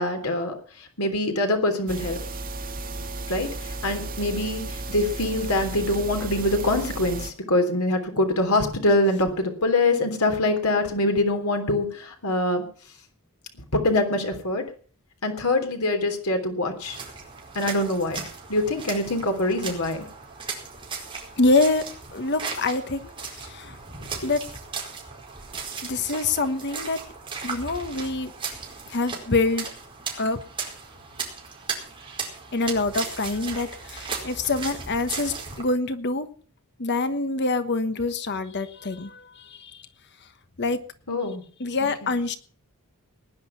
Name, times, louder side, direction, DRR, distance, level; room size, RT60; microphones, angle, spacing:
voice 1, 0.0-2.2 3.3-12.6 13.6-14.6 15.2-17.0 17.5-20.0 41.1-41.4 42.0-42.1, left 2 dB, 80° left, 5 dB, 3.4 m, -24 dB
sound 1, 1.9-7.3, right 2 dB, 40° right, 2.1 m, -34 dB
sound 2, 16.8-35.6, right 5 dB, 25° right, 4.7 m, -36 dB
voice 2, 21.4-21.9 22.1-23.0 23.5-23.7 24.2-24.4 25.8-27.0 27.4-28.3 28.9-29.6 30.2-30.4 32.5-36.3 36.8-39.7 40.6-40.8 41.6-42.4, left 3 dB, 50° left, 10 dB, 1.2 m, -25 dB
19.0 x 10.5 x 5.8 m, 0.42 s
head